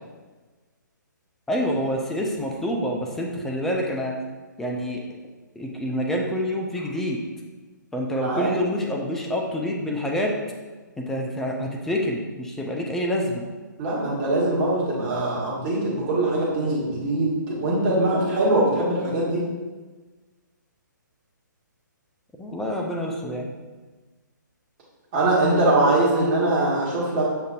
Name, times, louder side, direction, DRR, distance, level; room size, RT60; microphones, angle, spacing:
voice 1, 1.5-4.1 4.6-5.0 5.6-7.2 7.9-10.3 11.0-13.4 22.4-23.5, equal, 5° left, -1 dB, 0.3 m, -27 dB
voice 2, 8.2-8.5 13.8-19.4 25.1-27.4, right 2 dB, 30° right, -6 dB, 1.3 m, -22 dB
6.7 x 2.6 x 2.4 m, 1.3 s
figure-of-eight pair, 130°, 11 cm